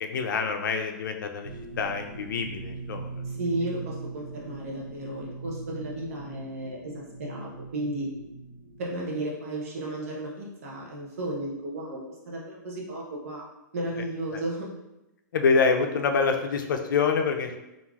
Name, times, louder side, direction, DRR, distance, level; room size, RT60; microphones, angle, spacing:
voice 1, 0.0-1.5 1.8-3.1 15.3-17.6, left 5 dB, 85° left, 5 dB, 0.4 m, -26 dB
sound 1, 1.4-8.9, right 4 dB, 70° right, 1.1 m, -40 dB
voice 2, 3.2-8.1 8.8-12.0 12.3-13.5 13.7-14.7, right 1 dB, 45° right, -2 dB, 0.5 m, -34 dB
2.4 x 2.3 x 3.2 m, 0.95 s
hypercardioid pair, 175°, 10 cm